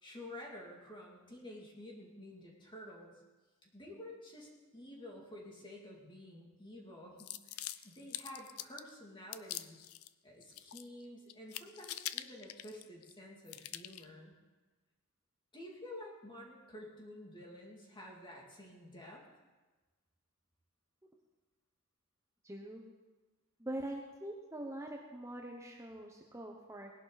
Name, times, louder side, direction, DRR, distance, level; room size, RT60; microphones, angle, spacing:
voice 1, 0.0-3.1 3.6-9.8 10.2-14.3 15.5-19.2, left 1 dB, 20° left, -2 dB, 2.5 m, -50 dB
sound 1, 7.2-8.9 9.3-10.1 10.4-11.0 11.3-13.1 13.5-14.1, left 13 dB, 80° left, 0.5 m, -44 dB
voice 2, 22.4-22.8 23.6-26.9, right 1 dB, 15° right, 0 dB, 0.9 m, -43 dB
19.5 x 11.5 x 4.1 m, 1.2 s
head